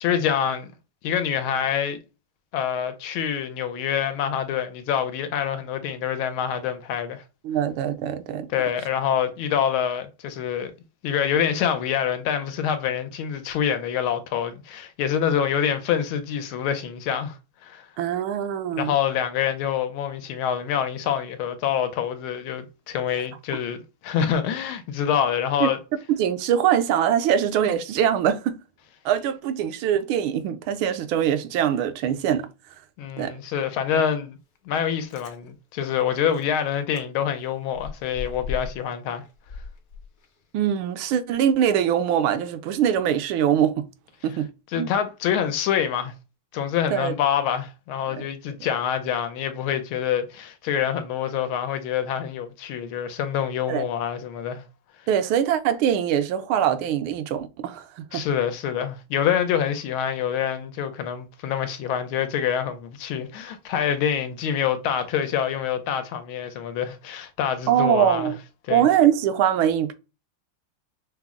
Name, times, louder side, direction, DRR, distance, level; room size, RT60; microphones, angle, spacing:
voice 1, 0.0-0.7 1.0-2.0 2.5-7.2 8.5-10.7 11.0-17.4 17.6-17.9 18.8-25.8 33.0-34.4 34.7-39.2 44.7-46.1 46.5-54.6 58.1-68.3 68.7-68.9, left 8 dB, 85° left, 1.4 m, -26 dB
voice 2, 7.4-8.5 18.0-18.9 25.6-25.7 26.1-28.6 29.0-32.5 33.2-33.3 40.5-43.9 44.2-44.5 44.7-44.9 46.9-47.1 48.1-48.2 53.7-53.8 55.1-58.2 67.7-68.4 68.7-69.9, right 9 dB, 80° right, 1.4 m, -23 dB
Chewing mastication, 34.9-35.4 36.0-36.1 36.3-36.5 36.9-37.0 37.4-38.9 39.2-40.4 40.8-40.9, left 5 dB, 50° left, 0.7 m, -37 dB
5.7 x 2.0 x 3.6 m
omnidirectional pair, 2.3 m